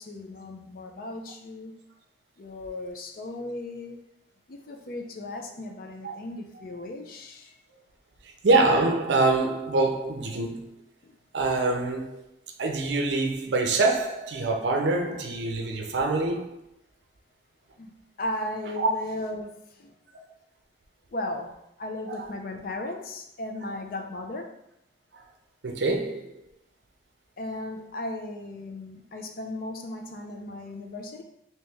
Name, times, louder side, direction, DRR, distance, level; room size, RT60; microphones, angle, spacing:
voice 1, 0.0-1.8 2.4-4.0 4.5-7.6 11.0-11.2 17.8-20.0 21.1-24.6 27.4-31.2, left 2 dB, 50° left, 4 dB, 0.4 m, -36 dB
voice 2, 8.2-10.7 11.3-12.2 12.6-16.6 18.8-18.9 20.1-20.2 22.1-22.3 25.1-25.2 25.6-26.4, right 3 dB, 75° right, 3 dB, 0.5 m, -25 dB
3.0 x 2.9 x 3.3 m, 0.81 s
head